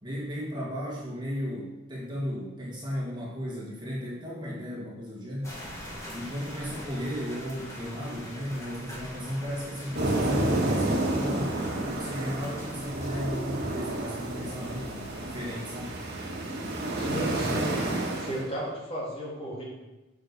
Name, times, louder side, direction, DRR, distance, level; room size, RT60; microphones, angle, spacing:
voice 1, 0.0-5.6 6.1-16.0, equal, 25° right, -5 dB, 1.9 m, -35 dB
sound 1, 5.4-15.6, equal, 15° left, 2.4 m, -44 dB
sound 2, 9.9-18.5, right 1 dB, 55° right, 1.8 m, -30 dB
voice 2, 17.0-17.7 18.2-19.6, equal, 30° left, -6 dB, 3.5 m, -34 dB
7.6 x 6.1 x 6.8 m, 1.1 s
head